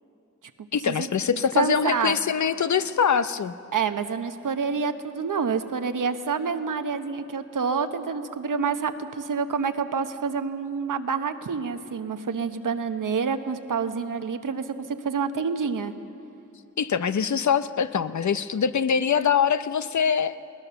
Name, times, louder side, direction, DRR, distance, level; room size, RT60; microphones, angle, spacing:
voice 1, 0.7-3.5 16.8-20.4, left 7 dB, 65° left, 12 dB, 0.7 m, -23 dB
voice 2, 1.3-2.2 3.7-15.9, right 5 dB, 80° right, 9 dB, 1.0 m, -28 dB
20.0 x 19.0 x 6.9 m, 2.7 s
wide cardioid pair, 65°, 32 cm